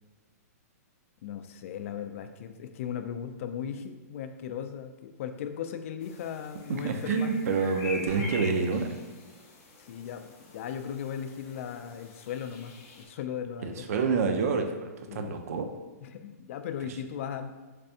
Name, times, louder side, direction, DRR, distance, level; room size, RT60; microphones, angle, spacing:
voice 1, 1.2-7.3 9.8-13.8 15.1-15.4 16.0-17.6, left 8 dB, 50° left, 8 dB, 0.3 m, -37 dB
sound 1, 6.0-13.1, left 2 dB, 30° left, 0.7 m, -45 dB
voice 2, 6.7-9.0 13.6-15.7, right 4 dB, 60° right, 5 dB, 0.4 m, -28 dB
Drum, 8.1-9.3, left 2 dB, 80° right, 0.9 m, -44 dB
3.3 x 3.3 x 2.7 m, 1.2 s
hypercardioid pair, 145°, 9 cm